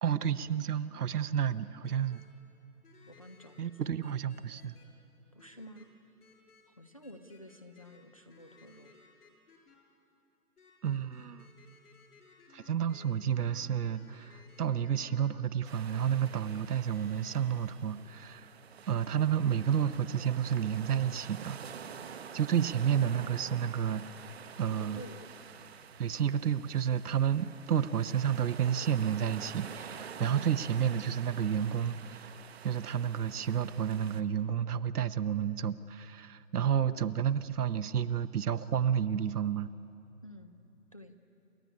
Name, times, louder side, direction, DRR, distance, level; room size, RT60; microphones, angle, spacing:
voice 1, 0.0-2.2 3.6-4.8 10.8-11.5 12.5-18.5 18.9-21.6 22.3-24.0 24.6-25.0 26.0-32.3 32.6-39.7, right 9 dB, 75° right, 13 dB, 1.0 m, -30 dB
sound 1, 1.8-2.3 2.8-3.6 4.0-4.8 5.4-5.9 6.2-6.6 7.0-8.0 8.3-9.8 10.6-15.3 15.7-15.8 16.2-17.7, left 5 dB, 75° left, 6.9 m, -60 dB
voice 2, 3.1-4.1 5.3-5.9 6.7-8.9 22.9-23.5 24.7-25.3 30.2-30.7 36.9-37.1 40.2-40.6 40.9-41.2, left 1 dB, 25° left, 6 dB, 0.5 m, -50 dB
sound 2, 15.6-34.2, right 7 dB, 45° right, 1.0 m, -48 dB
28.5 x 13.5 x 9.8 m, 2.9 s
hypercardioid pair, 165°, 46 cm